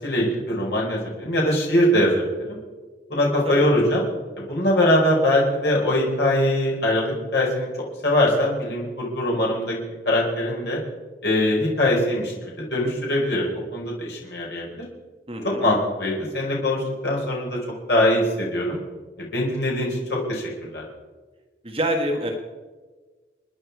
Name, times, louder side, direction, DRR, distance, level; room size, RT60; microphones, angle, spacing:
voice 1, 0.0-2.2 2.5-2.6 3.1-4.0 4.4-7.7 8.0-9.8 10.0-10.8 11.2-14.7 15.4-17.6 17.9-18.8 19.2-20.8, left 1 dB, 65° left, -3 dB, 4.7 m, -22 dB
voice 2, 15.3-15.6 21.6-22.3, right 1 dB, 30° right, 2 dB, 1.6 m, -26 dB
30.0 x 10.0 x 4.7 m, 1.4 s
head